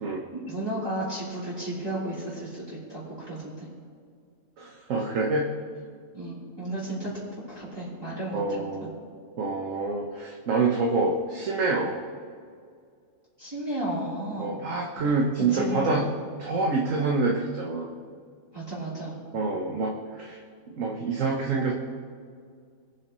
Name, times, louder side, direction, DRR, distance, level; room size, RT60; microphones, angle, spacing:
voice 1, 0.3-3.7 6.1-7.1 7.5-8.9 13.4-14.5 15.0-16.2 18.5-19.1, right 1 dB, 15° right, -10 dB, 3.5 m, -33 dB
voice 2, 4.6-5.5 8.3-8.9 9.4-11.9 14.4-16.1 16.4-17.9 19.3-20.4 20.7-21.7, right 3 dB, 60° right, -1 dB, 1.3 m, -26 dB
22.0 x 7.7 x 3.1 m, 2.2 s
omnidirectional pair, 1.5 m